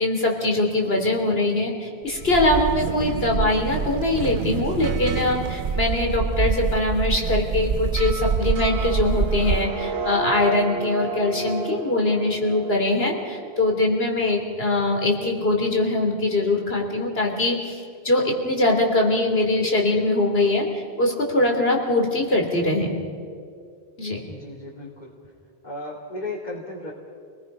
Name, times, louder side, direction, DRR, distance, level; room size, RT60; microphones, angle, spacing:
voice 1, 0.0-22.9 24.0-24.2, left 2 dB, 65° left, 1 dB, 3.5 m, -22 dB
sound 1, 2.1-9.6, right 6 dB, 55° right, 0.9 m, -26 dB
sound 2, 8.4-14.4, right 3 dB, 70° right, 1.2 m, -33 dB
voice 2, 24.2-25.1 25.6-26.9, left 2 dB, 45° left, -3 dB, 2.8 m, -35 dB
30.0 x 20.0 x 5.5 m, 2.3 s
omnidirectional pair, 1.1 m